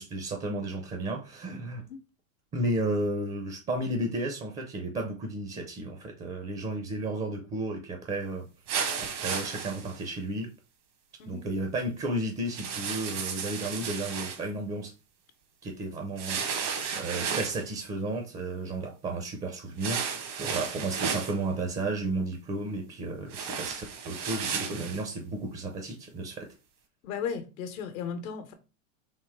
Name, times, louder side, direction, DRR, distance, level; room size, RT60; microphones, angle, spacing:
voice 1, 0.0-1.8 2.5-8.5 9.0-10.5 11.3-14.9 15.6-26.5, right 2 dB, 20° right, 0.4 m, -33 dB
sound 1, 8.7-10.0 12.5-14.4 16.2-17.7 19.8-21.3 23.3-25.0, right 6 dB, 75° right, 1.3 m, -33 dB
voice 2, 27.0-28.5, left 6 dB, 75° left, 0.9 m, -35 dB
3.6 x 2.8 x 4.6 m
supercardioid pair, 135°, 41 cm